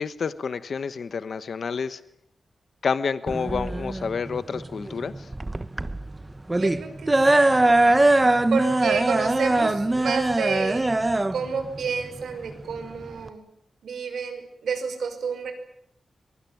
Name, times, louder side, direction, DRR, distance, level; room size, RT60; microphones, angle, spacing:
voice 1, 0.0-2.0 2.8-5.3, left 5 dB, 55° left, 14 dB, 1.1 m, -29 dB
sound 1, 3.3-13.3, right 2 dB, 15° right, 1.1 m, -22 dB
voice 2, 6.6-7.7 8.5-10.9 11.3-13.4 13.8-15.5, right 5 dB, 85° right, 7 dB, 5.7 m, -30 dB
23.0 x 23.0 x 9.3 m, 0.70 s
wide cardioid pair, 155°, 0 cm